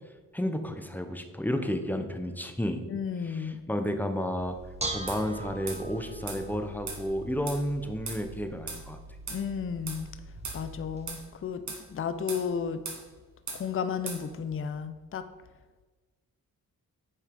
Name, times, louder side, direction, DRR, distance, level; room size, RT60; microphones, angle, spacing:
voice 1, 0.3-2.8 3.2-4.6 4.9-9.0, equal, 5° left, 7 dB, 0.9 m, -31 dB
voice 2, 2.9-3.6 9.3-10.1 10.5-11.6 11.9-12.8 13.5-15.2, left 6 dB, 35° left, 11 dB, 0.6 m, -33 dB
Bell / Dishes pots and pans, 4.4-11.1, right 2 dB, 15° right, 1.4 m, -41 dB
sound 1, 5.1-5.2 5.7-5.8 6.3-6.4 6.9-7.0 7.5-7.6 8.1-8.2 8.7-8.8 9.3-9.4 9.9-10.0 10.4-10.6 11.1-11.2 11.7-11.8 12.3-12.5 12.9-13.0 13.5-13.6 14.1-14.2, right 4 dB, 50° right, 2.1 m, -38 dB
8.3 x 5.5 x 5.3 m, 1.3 s
cardioid pair, 85°, 36 cm